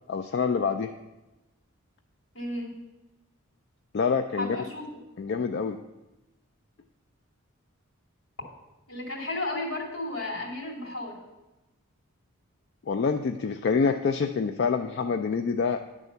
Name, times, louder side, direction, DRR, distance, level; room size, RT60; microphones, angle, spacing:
voice 1, 0.1-0.9 3.9-4.6 5.2-5.8 12.9-15.8, left 5 dB, 50° left, 6 dB, 0.3 m, -26 dB
voice 2, 2.3-2.8 4.4-5.0 8.9-11.2, left 2 dB, 70° left, -2 dB, 2.4 m, -33 dB
10.5 x 3.6 x 6.7 m, 1.0 s
head